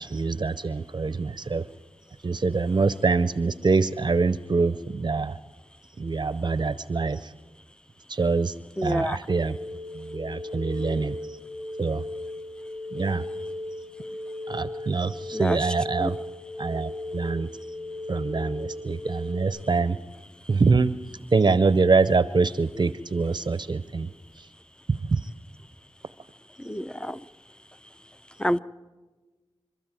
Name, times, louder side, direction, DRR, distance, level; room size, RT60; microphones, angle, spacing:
voice 1, 0.0-1.7 2.2-5.4 6.0-7.3 8.1-8.5 8.8-9.6 9.9-11.2 11.8-12.0 12.9-13.3 14.5-16.2 16.6-17.5 18.1-20.0 20.5-20.9 21.3-24.1 25.1-25.2, right 4 dB, 50° right, 15 dB, 0.6 m, -24 dB
voice 2, 8.8-9.2 15.3-15.6 16.0-16.1 26.6-27.2 28.4-28.6, equal, 10° left, 14 dB, 0.6 m, -27 dB
sound 1, 9.4-19.4, left 1 dB, 30° left, 5.2 m, -36 dB
27.0 x 13.0 x 8.9 m, 1.3 s
wide cardioid pair, 60°, 10 cm